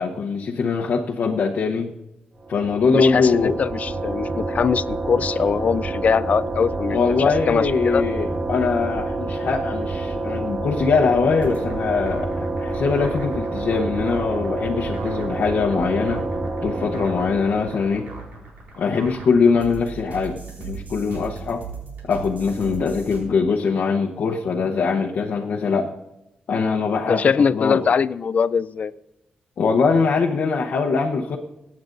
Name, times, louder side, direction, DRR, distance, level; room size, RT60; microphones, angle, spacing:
voice 1, 0.0-1.9 2.5-3.6 6.9-16.2 16.6-18.1 18.8-21.6 22.0-26.0 26.5-27.8 29.6-31.4, left 5 dB, 75° left, -1 dB, 0.9 m, -22 dB
sound 1, 2.4-18.3, right 2 dB, 35° right, 0.8 m, -28 dB
voice 2, 2.9-8.0 27.1-28.9, left 6 dB, 50° left, 17 dB, 0.4 m, -22 dB
sound 2, 11.3-23.2, right 5 dB, 75° right, 4.8 m, -38 dB
23.5 x 9.5 x 2.6 m, 0.90 s
wide cardioid pair, 115°, 3 cm